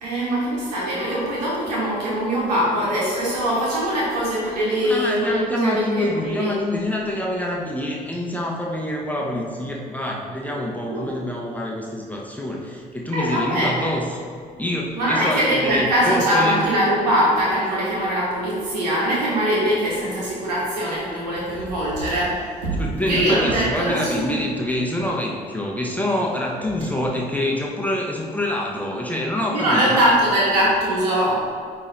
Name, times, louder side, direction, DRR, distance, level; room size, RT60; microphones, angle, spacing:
voice 1, 0.0-6.6 10.8-11.1 13.1-13.9 15.0-24.3 29.5-31.4, equal, 85° right, -6 dB, 1.4 m, -22 dB
voice 2, 4.8-14.0 14.6-16.7 22.8-30.1, left 1 dB, 5° left, -2 dB, 1.0 m, -26 dB
9.6 x 3.3 x 3.9 m, 2.2 s
figure-of-eight pair, 45°, 20 cm